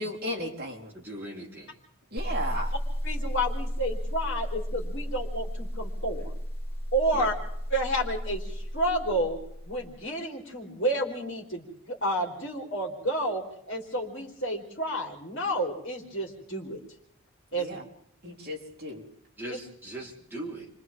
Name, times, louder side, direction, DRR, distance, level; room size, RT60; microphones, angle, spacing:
voice 1, 0.0-0.9 2.1-2.7 17.5-17.8 18.2-19.0, equal, 45° right, -3 dB, 3.9 m, -35 dB
voice 2, 0.9-1.7 7.1-7.3 19.4-20.7, right 1 dB, 10° right, -5 dB, 4.3 m, -39 dB
sound 1, 2.2-10.0, equal, 25° left, 3.9 m, -34 dB
voice 3, 3.0-6.3 6.9-7.3 7.7-9.4 9.7-16.8 17.5-17.7 19.5-19.6, right 1 dB, 55° left, 0 dB, 4.1 m, -30 dB
29.5 x 25.0 x 3.7 m, 0.69 s
head